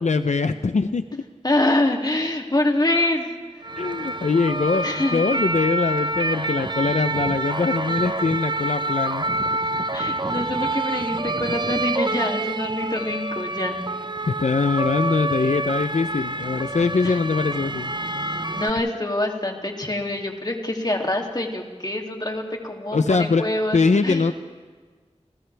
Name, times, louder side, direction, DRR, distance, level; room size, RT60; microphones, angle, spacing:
voice 1, 0.0-1.2 3.8-9.2 14.2-18.0 22.9-23.5 23.7-24.3, left 4 dB, 85° left, 9 dB, 0.6 m, -22 dB
voice 2, 1.4-3.3 4.8-5.4 9.9-13.8 17.0-17.2 18.5-24.3, left 1 dB, 35° left, 1 dB, 2.7 m, -25 dB
sound 1, 3.6-18.7, right 2 dB, 40° right, 0.7 m, -27 dB
29.5 x 28.5 x 3.4 m, 1.5 s
wide cardioid pair, 55°, 12 cm